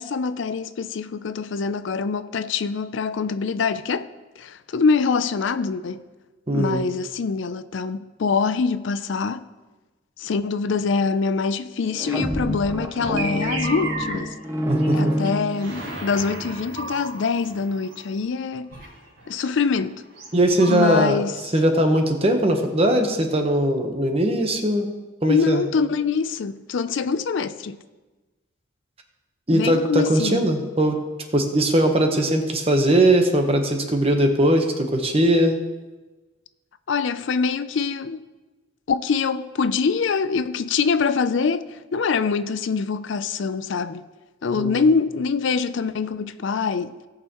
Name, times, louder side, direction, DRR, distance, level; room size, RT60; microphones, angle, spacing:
voice 1, 0.0-4.1 4.4-6.0 6.5-9.5 10.2-14.4 14.9-18.8 19.3-20.0 20.7-21.4 25.3-27.8 29.5-30.4 36.9-38.3 38.9-44.1 44.4-47.0, left 5 dB, 65° left, 0.4 m, -24 dB
voice 2, 6.5-6.8 14.6-15.1 20.3-21.2 21.5-24.9 25.2-25.6 29.5-31.0 31.3-35.6 44.6-44.7, right 1 dB, 30° right, 1.0 m, -20 dB
sound 1, 11.8-16.1, equal, 15° right, 0.6 m, -27 dB
sound 2, 13.2-14.2 14.5-15.0 15.2-15.3 15.5-18.1 18.7-21.0, right 2 dB, 85° right, 3.6 m, -34 dB
17.5 x 6.6 x 3.0 m
head